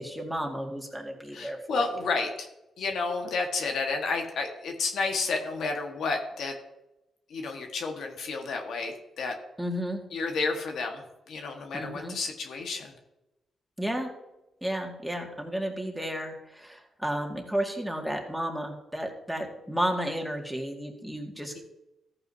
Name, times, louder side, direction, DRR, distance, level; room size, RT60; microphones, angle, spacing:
voice 1, 0.0-1.9 9.6-10.0 11.7-12.2 13.8-14.1 14.6-21.6, equal, ahead, 1 dB, 2.0 m, -32 dB
voice 2, 1.3-2.5 2.8-6.5 7.3-9.3 10.1-12.9, left 4 dB, 75° left, 3 dB, 1.5 m, -31 dB
14.5 x 8.8 x 2.8 m, 0.94 s
cardioid pair, 85°, 0 cm